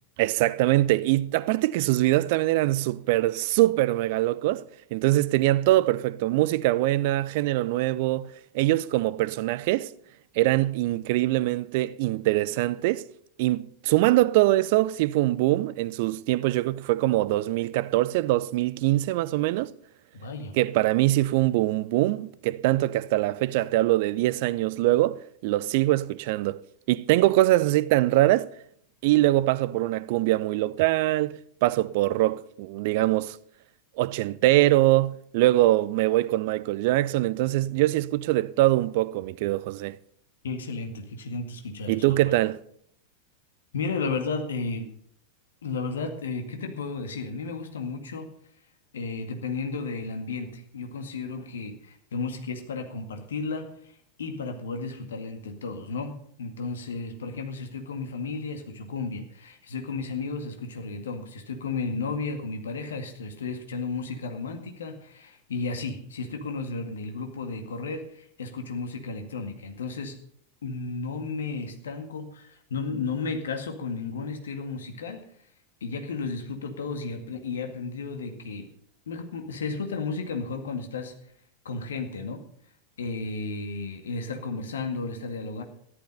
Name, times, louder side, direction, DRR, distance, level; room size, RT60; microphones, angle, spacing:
voice 1, 0.2-4.6 4.9-9.9 10.4-13.0 13.4-19.7 20.5-26.6 26.9-28.5 29.0-33.4 34.0-40.0 41.9-42.6, right 17 dB, 50° right, 0.5 m, -23 dB
voice 2, 20.1-20.6 40.4-42.4 43.7-44.9 45.6-48.3 48.9-53.9 54.2-70.2 70.6-75.2 75.8-78.7 79.1-81.2 81.6-82.5 83.0-85.6, left 4 dB, 65° left, 2.0 m, -33 dB
13.5 x 11.5 x 5.5 m
figure-of-eight pair, 90°, 0 cm